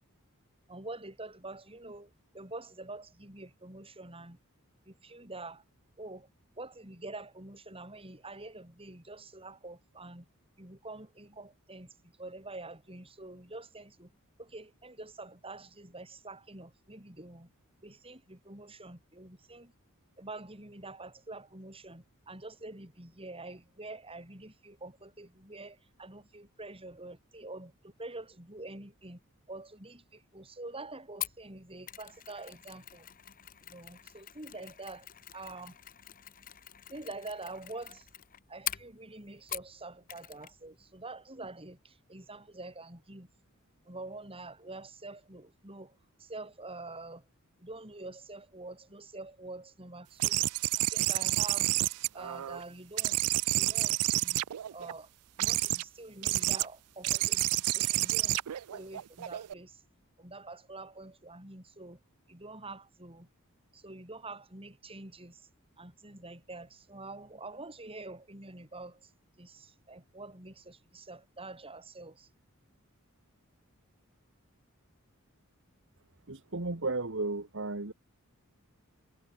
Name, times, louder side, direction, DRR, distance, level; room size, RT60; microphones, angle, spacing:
voice 1, 0.7-4.4 4.8-5.6 6.0-6.3 6.6-10.3 10.6-14.1 14.4-17.5 17.8-19.7 20.2-29.2 29.5-33.1 33.6-35.1 35.3-35.8 36.9-38.1 38.5-43.3 43.8-47.2 47.6-50.4 50.7-51.7 52.1-53.2 53.5-54.4 54.7-55.1 55.4-58.4 58.7-59.8 60.2-62.0 62.3-63.3 63.7-65.5 65.8-69.1 69.4-72.3, right 2 dB, 25° right, 7.5 m, -46 dB
Mechanisms, 31.2-39.8 40.1-40.6 40.8-40.9, left 12 dB, 40° left, 1.0 m, -44 dB
sound 1, 50.2-52.6 53.0-54.9 55.4-55.8 56.2-56.7 57.0-59.5, right 17 dB, 90° right, 0.4 m, -29 dB
voice 2, 76.3-77.9, right 3 dB, 55° right, 1.8 m, -34 dB
head